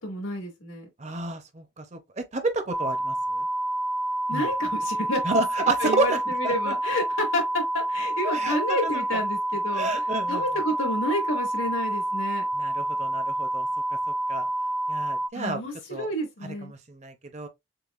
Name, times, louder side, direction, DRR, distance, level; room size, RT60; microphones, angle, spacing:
voice 1, 0.0-0.9 4.3-5.3 5.6-12.5 15.3-16.7, left 1 dB, 90° left, 2.2 m, -30 dB
voice 2, 1.0-3.4 4.3-4.5 5.2-6.2 6.4-6.7 8.2-8.6 9.7-10.4 12.6-13.7 14.3-14.5 14.9-15.6 15.9-16.1 16.7-17.5, right 2 dB, 35° right, 0.7 m, -30 dB
sound 1, 2.7-15.3, right 1 dB, ahead, 0.3 m, -28 dB
6.7 x 2.3 x 2.4 m
head